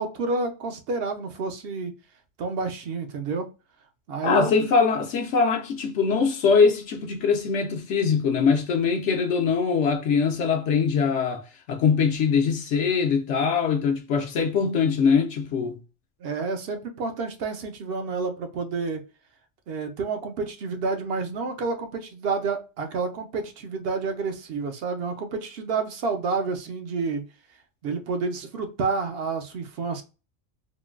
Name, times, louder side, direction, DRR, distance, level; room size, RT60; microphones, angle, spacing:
voice 1, 0.0-2.0 2.4-3.5 4.1-4.5 16.2-19.0 19.7-27.2 27.8-30.0, right 4 dB, 65° right, 0.7 m, -29 dB
voice 2, 4.2-15.8, left 5 dB, 70° left, 0.8 m, -22 dB
3.7 x 2.2 x 2.3 m
omnidirectional pair, 1.3 m